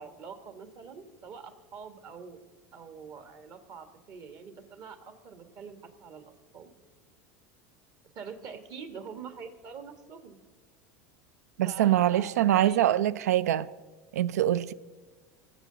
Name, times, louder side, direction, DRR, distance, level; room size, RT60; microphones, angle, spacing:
voice 1, 0.0-2.4 2.7-6.7 8.1-10.4 11.6-13.0, right 6 dB, 50° right, 1.5 m, -45 dB
voice 2, 11.6-13.7 14.1-14.7, right 12 dB, 80° right, 0.4 m, -24 dB
19.5 x 7.8 x 3.9 m
hypercardioid pair, 85°, 8 cm